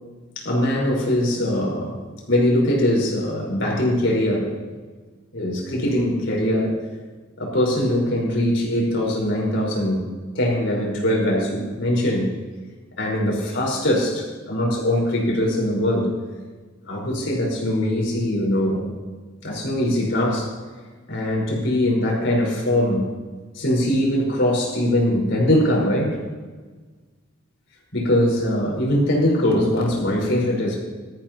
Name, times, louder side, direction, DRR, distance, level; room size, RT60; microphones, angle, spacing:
voice 1, 0.4-2.0 2.3-4.5 5.3-6.7 7.4-10.1 10.3-12.3 13.0-16.1 16.8-18.9 19.4-20.5 21.1-23.1 23.5-26.2 27.9-30.8, left 1 dB, 65° left, -3 dB, 4.7 m, -21 dB
18.5 x 13.5 x 2.9 m, 1.4 s
head